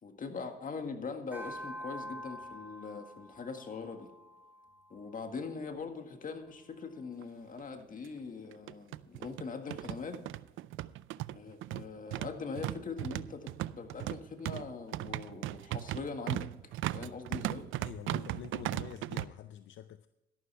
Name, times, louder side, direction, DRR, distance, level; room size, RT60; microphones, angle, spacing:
voice 1, 0.0-4.1 4.9-10.2 11.3-16.5 16.9-17.7, left 4 dB, 45° left, 1.8 m, -42 dB
sound 1, 1.3-5.9, equal, 10° right, 3.8 m, -47 dB
sound 2, 7.2-7.3 7.6-7.7 8.5-19.2, right 15 dB, 80° right, 0.4 m, -37 dB
voice 2, 17.8-20.1, left 12 dB, 70° left, 0.5 m, -46 dB
13.0 x 11.5 x 3.4 m
cardioid pair, 90°, 20 cm